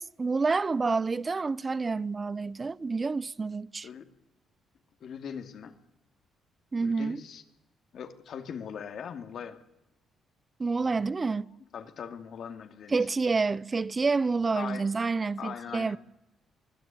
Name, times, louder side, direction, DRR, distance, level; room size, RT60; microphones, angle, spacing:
voice 1, 0.0-3.9 6.7-7.2 10.6-11.5 12.9-16.0, right 4 dB, 30° right, 0.7 m, -28 dB
voice 2, 5.0-5.7 6.8-7.4 7.9-9.6 11.2-11.4 11.7-13.1 14.6-14.9 15.4-16.0, left 7 dB, 65° left, 2.3 m, -40 dB
23.5 x 16.5 x 9.0 m
cardioid pair, 90°, 0 cm